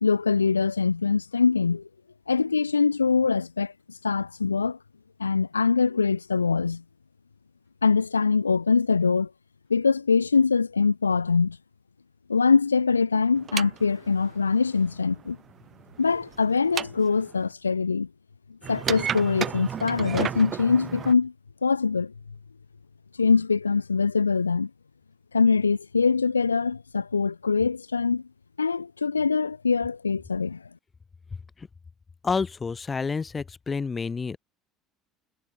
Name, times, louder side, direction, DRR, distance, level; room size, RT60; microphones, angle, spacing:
voice 1, 0.0-1.9 2.3-3.7 4.0-4.8 5.2-6.8 7.8-9.3 9.7-11.6 12.3-15.4 16.0-18.1 18.7-21.3 21.6-22.1 23.2-24.7 25.3-28.2 28.6-30.6, left 5 dB, 85° left, 1.2 m, -23 dB
sound 1, 13.4-17.5 18.6-21.1, right 8 dB, 35° right, 3.7 m, -33 dB
voice 2, 32.2-34.4, left 5 dB, 25° left, 2.7 m, -29 dB
figure-of-eight pair, 65°, 0 cm